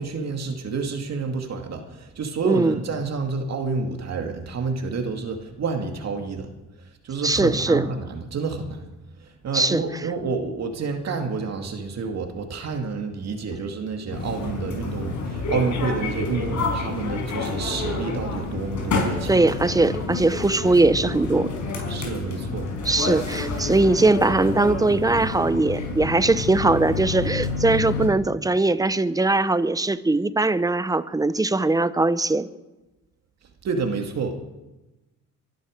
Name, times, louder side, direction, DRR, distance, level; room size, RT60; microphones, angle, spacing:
voice 1, 0.0-6.5 6.8-8.8 9.2-19.3 21.9-22.7 23.1-23.2 33.6-34.4, right 4 dB, 60° right, 2.4 m, -29 dB
voice 2, 2.4-2.8 7.2-7.9 9.5-9.8 19.3-21.5 22.9-32.5, right 2 dB, 10° right, 0.8 m, -20 dB
sound 1, 14.1-28.1, left 3 dB, 70° left, 5.4 m, -29 dB
23.0 x 12.0 x 5.2 m
cardioid pair, 90°, 30 cm